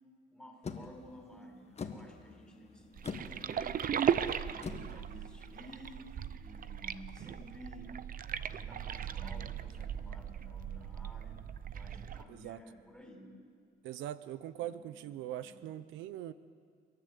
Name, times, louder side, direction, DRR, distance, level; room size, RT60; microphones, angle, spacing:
voice 1, 0.3-3.9 4.4-7.9 8.5-11.4 11.7-13.3 14.5-14.9 15.4-15.6, left 1 dB, 5° left, 2 dB, 4.9 m, -53 dB
sound 1, 0.6-6.2, left 5 dB, 35° left, 1.6 m, -46 dB
sound 2, 3.0-12.2, right 9 dB, 45° right, 0.7 m, -37 dB
voice 2, 12.3-12.6 13.8-16.3, right 12 dB, 90° right, 15 dB, 0.7 m, -41 dB
29.0 x 11.0 x 8.3 m, 2.1 s
cardioid pair, 100°, 19 cm